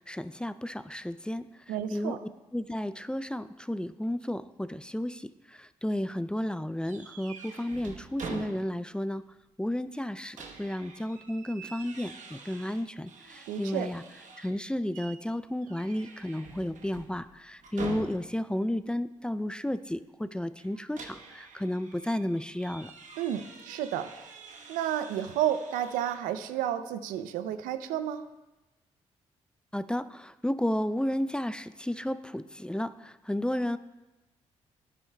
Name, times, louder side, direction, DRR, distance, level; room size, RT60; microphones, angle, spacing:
voice 1, 0.0-1.5 1.9-2.2 2.5-9.2 9.6-14.0 14.4-22.9 29.7-33.8, left 1 dB, 5° left, 14 dB, 0.4 m, -32 dB
voice 2, 1.7-2.2 13.5-13.9 23.2-24.1 24.7-28.3, right 10 dB, 85° right, 11 dB, 0.5 m, -31 dB
sound 1, 6.9-9.0 9.3-9.4 10.0-14.6 14.9-15.2 15.6-18.5 20.6-26.2, right 4 dB, 65° right, 1.1 m, -45 dB
11.5 x 9.7 x 2.2 m, 1.0 s
hypercardioid pair, 50°, 14 cm